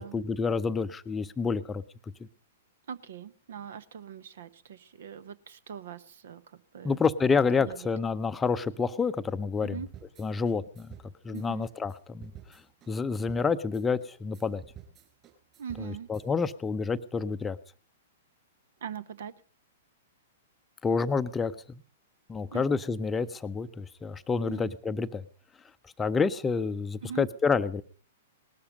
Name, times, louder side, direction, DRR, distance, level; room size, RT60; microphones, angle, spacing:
voice 1, 0.0-1.8 6.8-9.8 10.2-11.0 11.2-12.3 12.9-14.6 15.8-17.6 20.8-21.8 22.3-25.2 26.0-27.8, left 5 dB, 15° left, 11 dB, 0.7 m, -28 dB
voice 2, 2.9-7.0 7.6-7.9 9.6-9.9 11.3-11.7 15.6-16.1 18.8-19.3 22.5-22.7 24.4-24.7 27.0-27.3, right 8 dB, 55° right, 18 dB, 1.0 m, -41 dB
sound 1, 9.8-16.5, right 9 dB, 25° right, 4.6 m, -51 dB
19.5 x 13.0 x 5.3 m, 0.40 s
figure-of-eight pair, 105°, 0 cm